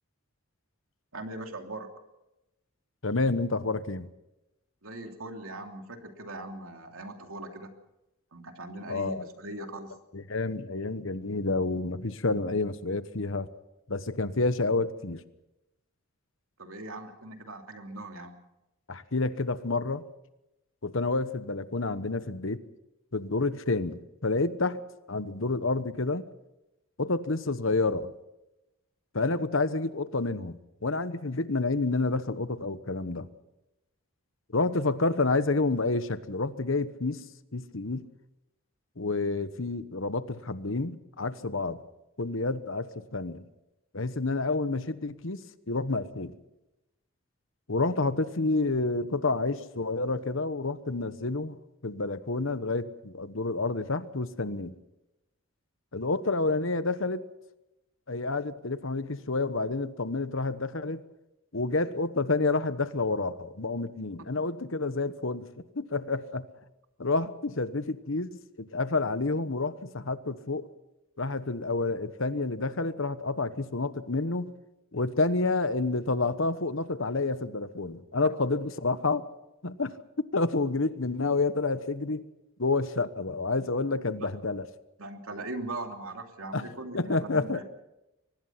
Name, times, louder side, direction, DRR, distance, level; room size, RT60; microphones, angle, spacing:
voice 1, 1.1-1.9 4.8-7.7 8.3-9.9 16.6-18.4 84.2-84.3 85.0-87.6, right 2 dB, 75° right, 4 dB, 3.0 m, -40 dB
voice 2, 3.0-4.1 8.9-9.3 10.1-13.5 13.9-15.2 18.9-20.0 20.8-22.6 23.1-24.8 25.1-26.2 27.0-28.1 29.1-30.5 30.8-33.3 34.5-37.2 37.5-38.1 39.0-41.8 42.2-43.4 43.9-46.3 47.7-51.6 51.8-54.7 55.9-57.2 58.1-61.0 61.5-65.5 65.7-66.5 67.0-68.3 68.6-70.7 71.2-74.5 74.9-79.3 79.6-79.9 80.3-82.2 82.6-84.7 86.5-86.7 86.9-87.6, left 3 dB, 65° left, 13 dB, 1.1 m, -29 dB
23.5 x 19.5 x 5.9 m, 0.93 s
head